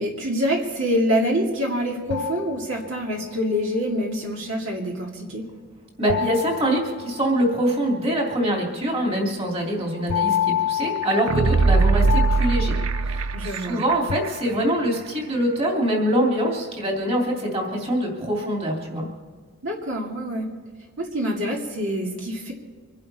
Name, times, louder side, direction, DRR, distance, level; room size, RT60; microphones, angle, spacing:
voice 1, 0.0-5.4 13.3-13.9 19.6-20.5 21.0-22.5, equal, 60° right, -1 dB, 2.3 m, -26 dB
sound 1, 2.1-3.3 6.1-7.7 10.1-13.7 14.1-15.0, left 10 dB, 70° left, 0.3 m, -29 dB
voice 2, 6.0-19.1, right 1 dB, 25° right, -1 dB, 3.0 m, -24 dB
sound 2, 11.0-13.9 14.2-14.3, right 4 dB, 75° right, 0.6 m, -20 dB
25.0 x 11.5 x 4.2 m, 1.5 s
head